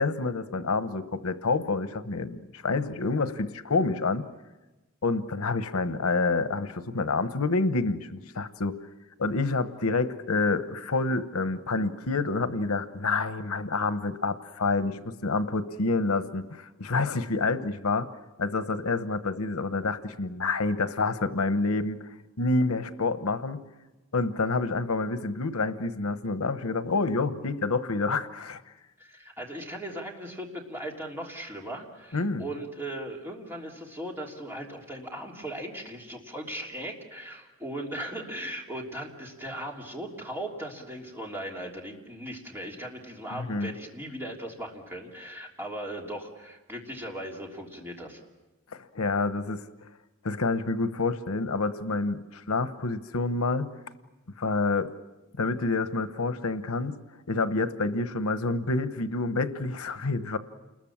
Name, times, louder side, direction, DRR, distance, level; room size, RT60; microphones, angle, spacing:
voice 1, 0.0-4.3 5.0-8.8 9.2-18.1 18.4-22.1 22.4-23.6 24.1-28.6 32.1-32.5 43.3-43.7 48.7-49.6 50.2-53.7 54.4-54.9 55.4-57.0 57.3-60.4, left 3 dB, 90° left, 11 dB, 1.0 m, -28 dB
voice 2, 29.0-48.2, right 1 dB, 10° right, -1 dB, 3.3 m, -38 dB
29.0 x 21.0 x 7.4 m, 1.1 s
head